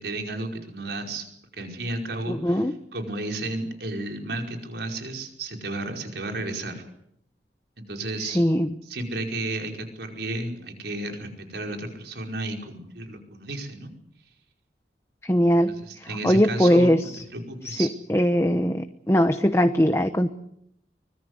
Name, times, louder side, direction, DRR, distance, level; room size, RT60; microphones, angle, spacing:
voice 1, 0.0-1.2 1.5-6.8 7.8-8.4 8.8-13.9 15.7-17.9, right 2 dB, 70° right, 3 dB, 5.1 m, -33 dB
voice 2, 2.3-2.7 8.2-8.7 15.2-15.7 16.0-17.2 17.6-20.3, equal, 15° left, 8 dB, 0.9 m, -21 dB
24.5 x 21.5 x 8.1 m, 0.75 s
head